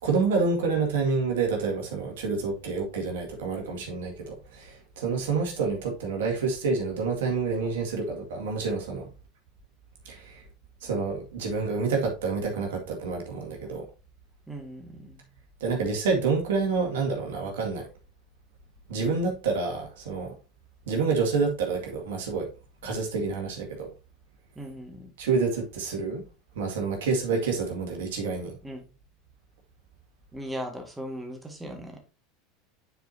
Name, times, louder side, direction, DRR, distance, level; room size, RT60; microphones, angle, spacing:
voice 1, 0.0-9.1 10.1-10.4 10.8-13.8 15.6-17.9 18.9-20.3 20.9-22.5 22.8-23.9 25.2-26.2 26.6-28.6, right 4 dB, 75° right, 2.1 m, -28 dB
voice 2, 14.5-15.2 24.6-25.1 28.6-28.8 30.3-32.0, equal, 10° right, 1.9 m, -38 dB
9.1 x 4.8 x 2.8 m
hypercardioid pair, 90°, 0 cm